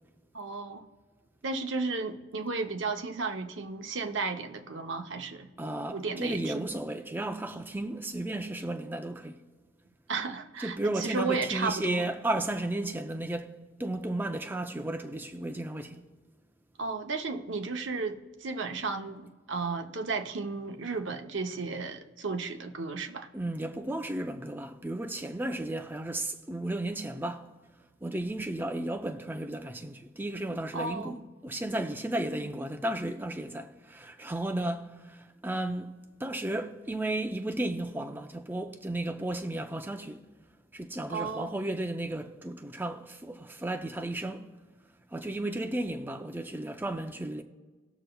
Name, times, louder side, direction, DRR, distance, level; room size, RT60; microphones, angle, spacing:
voice 1, 0.3-0.9 1.4-5.5 5.9-6.7 10.1-12.0 16.8-23.3 30.7-31.2 41.1-41.6, right 4 dB, 70° right, 0.7 m, -34 dB
voice 2, 5.6-9.4 10.6-13.5 13.8-16.0 23.3-27.5 28.0-35.9 36.2-40.2 40.7-44.5 45.1-47.4, right 1 dB, 10° right, 0.4 m, -34 dB
19.5 x 6.6 x 2.3 m
head